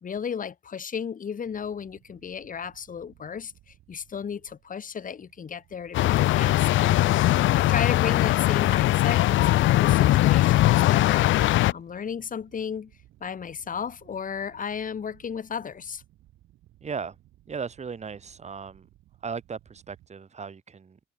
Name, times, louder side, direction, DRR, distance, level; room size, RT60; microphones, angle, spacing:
voice 1, 0.0-3.5 3.9-11.3 11.7-12.9 13.2-16.0, left 7 dB, 40° left, 1.6 m, -34 dB
sound 1, 1.4-20.1, right 15 dB, 85° right, 6.8 m, -59 dB
sound 2, 5.9-11.7, left 15 dB, 75° left, 0.5 m, -20 dB
voice 2, 16.8-17.1 17.5-18.9 19.2-21.0, right 5 dB, 35° right, 1.6 m, -36 dB
cardioid pair, 90°, 20 cm